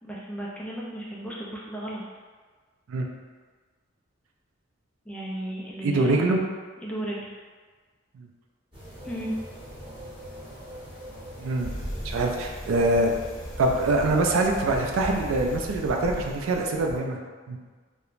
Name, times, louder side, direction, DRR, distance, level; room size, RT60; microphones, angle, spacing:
voice 1, 0.0-2.0 5.1-6.3 6.8-7.3 9.0-9.3, right 1 dB, 5° left, -5 dB, 0.3 m, -34 dB
voice 2, 5.8-6.4 8.2-8.3 11.4-11.7 12.0-13.1 13.6-17.2 17.5-17.6, right 2 dB, 75° right, 2 dB, 0.3 m, -24 dB
sound 1, 8.7-15.6, equal, 25° right, 1.0 m, -43 dB
Bicycle, 11.6-17.0, equal, 35° left, 0.7 m, -37 dB
3.0 x 2.1 x 2.4 m, 1.5 s
head